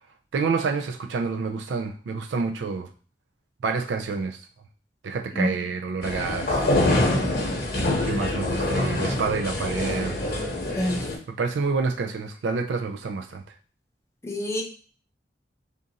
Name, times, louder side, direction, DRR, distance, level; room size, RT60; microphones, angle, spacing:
voice 1, 0.3-2.9 3.6-4.4 5.0-7.1 8.0-10.2 11.3-13.4, right 4 dB, 75° right, 5 dB, 0.4 m, -28 dB
sound 1, 6.0-11.2, left 1 dB, 55° left, 1.0 m, -25 dB
voice 2, 10.8-11.1 14.2-14.6, equal, 15° left, 1 dB, 0.6 m, -26 dB
3.7 x 2.5 x 3.9 m, 0.41 s
head